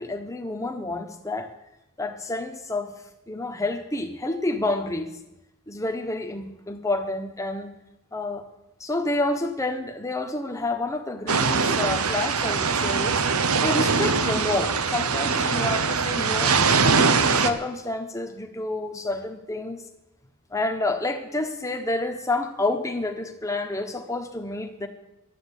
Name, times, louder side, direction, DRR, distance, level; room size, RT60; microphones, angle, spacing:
voice 1, 0.0-1.5 2.0-2.9 3.3-5.1 5.7-7.7 8.1-8.4 8.8-13.2 13.6-16.6 17.1-19.8 20.5-24.9, left 2 dB, 15° left, 4 dB, 1.3 m, -29 dB
sound 1, 11.3-17.5, right 5 dB, 80° right, 1.0 m, -22 dB
12.0 x 8.3 x 9.9 m, 0.91 s
head